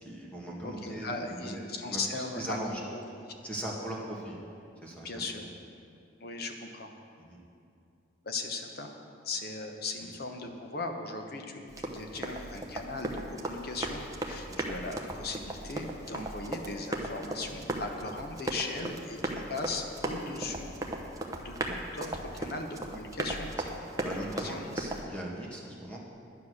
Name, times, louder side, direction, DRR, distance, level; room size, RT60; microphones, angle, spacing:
voice 1, 0.0-1.6 1.9-2.8 3.4-4.4 4.8-5.5 7.2-7.4 12.0-12.2 14.4-14.6 19.3-19.5 23.7-26.0, right 1 dB, 5° left, -4 dB, 1.9 m, -40 dB
voice 2, 0.6-3.0 5.0-5.4 6.2-6.9 8.2-8.9 9.2-20.7 21.4-23.5 24.4-24.6, left 3 dB, 50° left, 4 dB, 1.1 m, -38 dB
Run, 11.7-25.0, right 1 dB, 15° right, 0.9 m, -37 dB
10.5 x 9.9 x 6.5 m, 2.5 s
head